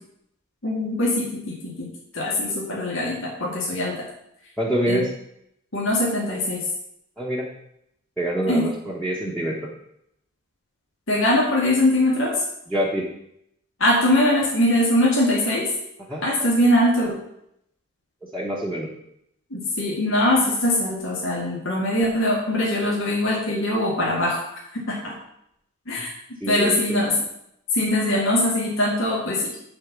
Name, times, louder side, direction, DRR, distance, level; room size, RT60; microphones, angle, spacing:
voice 1, 0.6-1.9 2.1-4.0 4.9-5.0 5.7-6.6 8.5-8.7 11.1-12.4 13.8-15.7 16.2-17.2 19.5-24.4 24.7-25.2 25.9-26.1 26.5-27.1 27.7-29.5, left 1 dB, 65° left, -3 dB, 2.1 m, -22 dB
voice 2, 4.6-5.1 7.2-7.5 8.2-9.7 12.7-13.1 16.1-16.2 18.3-18.9 26.4-27.0, equal, 5° left, -5 dB, 1.1 m, -25 dB
10.0 x 4.2 x 7.3 m, 0.76 s
head